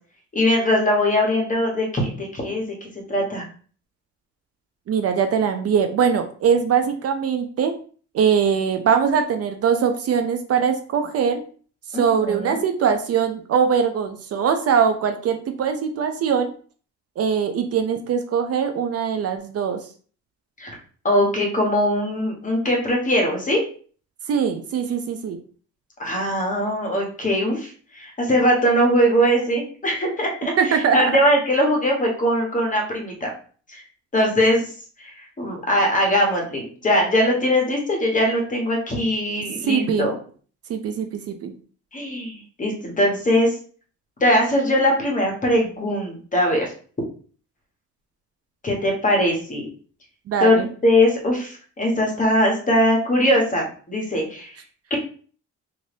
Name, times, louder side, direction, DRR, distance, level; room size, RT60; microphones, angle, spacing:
voice 1, 0.3-3.4 11.9-12.6 20.6-20.7 21.0-23.6 26.0-33.3 33.7-33.8 34.1-34.6 35.2-40.1 41.9-43.5 44.2-46.7 48.6-49.7 50.4-54.5 54.9-55.0, equal, 25° left, 0 dB, 1.1 m, -21 dB
voice 2, 4.9-7.7 8.1-11.4 11.9-16.5 17.2-19.8 24.3-25.4 30.6-31.2 39.7-40.1 40.7-41.5 50.3-50.7, right 7 dB, 55° right, 7 dB, 0.5 m, -21 dB
2.6 x 2.5 x 3.3 m, 0.43 s
cardioid pair, 90°, 30 cm